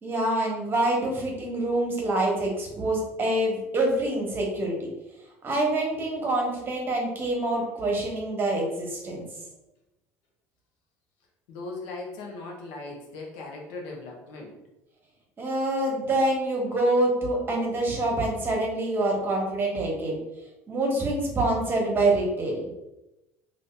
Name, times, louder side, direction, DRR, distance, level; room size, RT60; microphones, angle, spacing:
voice 1, 0.0-4.9 5.4-9.3 15.4-20.2 20.7-22.7, right 1 dB, 30° right, 0 dB, 1.1 m, -26 dB
voice 2, 11.5-14.6, left 3 dB, 80° left, 0 dB, 0.9 m, -38 dB
2.7 x 2.6 x 3.4 m, 0.93 s
supercardioid pair, 90°, 7 cm